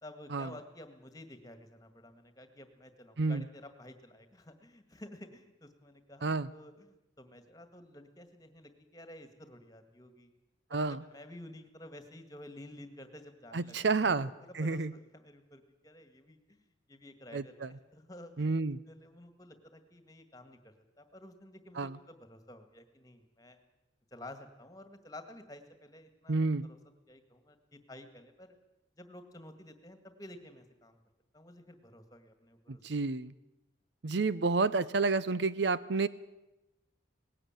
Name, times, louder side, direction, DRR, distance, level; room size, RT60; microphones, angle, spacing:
voice 1, 0.0-10.3 10.7-14.2 14.5-16.6 16.9-18.6 18.9-23.6 24.1-26.8 27.1-28.6 29.0-31.0 31.3-33.1, left 1 dB, 20° left, 8 dB, 1.9 m, -52 dB
voice 2, 10.7-11.0 13.5-14.3 14.5-14.9 17.3-17.7 18.4-18.8 21.8-22.0 26.3-26.7 32.7-33.3 34.0-36.1, right 3 dB, 65° right, 16 dB, 0.6 m, -30 dB
19.0 x 16.5 x 9.0 m, 0.97 s
head